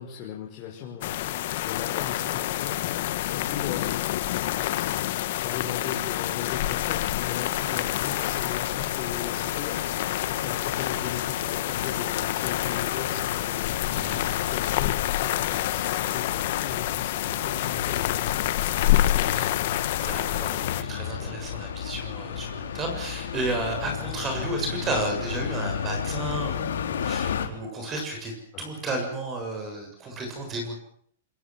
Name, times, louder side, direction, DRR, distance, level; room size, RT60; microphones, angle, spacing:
voice 1, 0.0-4.3 4.5-5.0 5.4-18.6 19.1-19.5 21.2-21.3 23.8-24.0 28.5-28.7, left 8 dB, 35° left, -1 dB, 5.9 m, -38 dB
sound 1, 1.0-20.8, left 14 dB, 50° left, 1.9 m, -27 dB
sound 2, 9.3-27.5, left 8 dB, 80° left, 4.5 m, -34 dB
voice 2, 13.9-14.2 19.4-19.5 20.0-28.3 28.6-30.7, right 2 dB, 20° right, 4 dB, 7.3 m, -32 dB
26.5 x 22.5 x 7.7 m, 0.65 s
hypercardioid pair, 150°, 0 cm